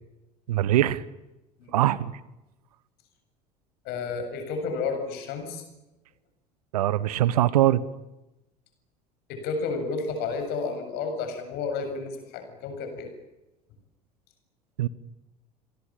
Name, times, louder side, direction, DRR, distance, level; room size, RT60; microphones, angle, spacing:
voice 1, 0.5-1.0 1.7-2.1 6.7-7.8 14.8-14.9, right 13 dB, 65° right, 20 dB, 1.2 m, -22 dB
voice 2, 3.9-5.6 9.3-13.1, left 4 dB, 50° left, 7 dB, 7.6 m, -31 dB
28.5 x 23.0 x 9.0 m, 0.97 s
figure-of-eight pair, 70°, 21 cm